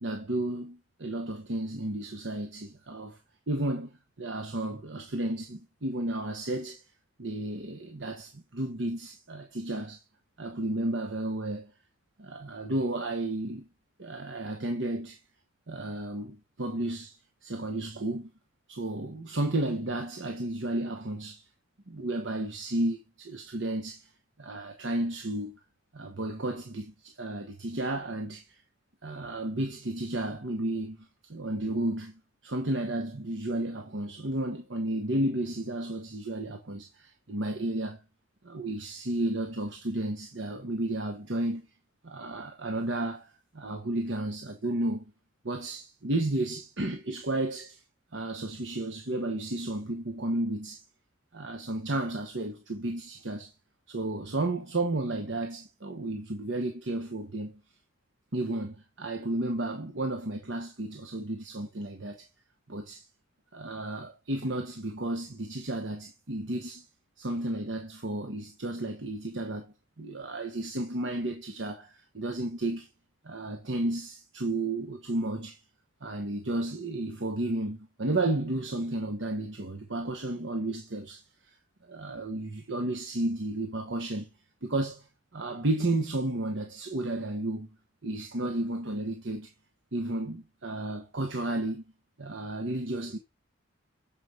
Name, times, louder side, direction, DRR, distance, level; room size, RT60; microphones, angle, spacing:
voice 1, 0.0-3.2 3.5-6.8 7.2-10.0 10.4-11.7 12.2-13.7 14.0-15.2 15.7-17.2 17.4-18.3 18.7-21.4 21.9-24.1 24.4-25.6 25.9-28.6 29.0-31.0 31.3-38.0 38.4-41.7 42.0-45.0 45.4-47.8 48.1-50.8 51.3-53.5 53.9-57.6 58.3-62.3 62.7-63.1 63.5-66.8 67.2-72.9 73.2-75.6 76.0-81.2 81.8-84.3 84.6-85.1 85.3-87.7 88.0-89.5 89.9-91.8 92.2-93.2, right 1 dB, 70° right, 1.2 m, -32 dB
7.0 x 5.1 x 6.4 m
head